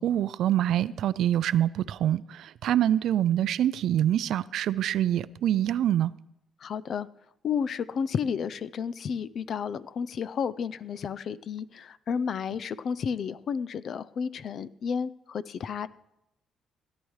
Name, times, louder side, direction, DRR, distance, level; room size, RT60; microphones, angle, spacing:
voice 1, 0.0-6.1, right 11 dB, 75° right, 0.4 m, -25 dB
voice 2, 6.6-7.1 7.4-15.9, left 6 dB, 60° left, 0.4 m, -32 dB
16.5 x 10.5 x 3.2 m
cardioid pair, 90°, 0 cm